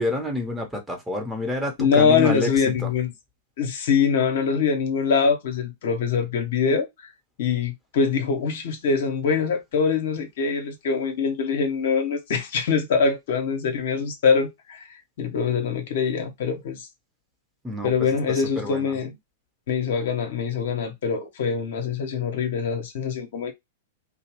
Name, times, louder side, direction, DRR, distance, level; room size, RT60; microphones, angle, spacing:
voice 1, 0.0-2.9 17.6-19.0, left 1 dB, 10° right, 0.8 m, -29 dB
voice 2, 1.8-3.1 3.6-7.1 7.4-16.9 17.8-19.2 19.7-23.5, left 6 dB, 60° left, 0.7 m, -23 dB
2.7 x 2.0 x 2.9 m
hypercardioid pair, 105°, 0 cm